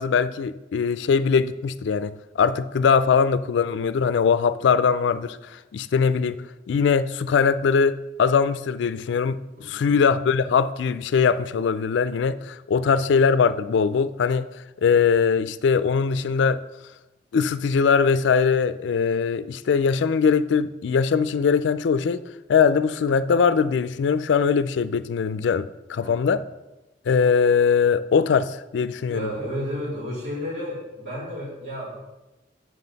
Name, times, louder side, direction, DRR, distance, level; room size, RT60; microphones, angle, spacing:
voice 1, 0.0-9.4 9.6-14.4 14.8-16.6 17.3-22.2 22.5-26.4 27.1-29.3, left 6 dB, 70° left, 15 dB, 0.3 m, -21 dB
voice 2, 9.6-10.0 12.7-12.9 25.9-26.3 29.1-32.0, equal, 85° right, -9 dB, 2.9 m, -32 dB
7.5 x 7.3 x 4.0 m, 1.0 s
head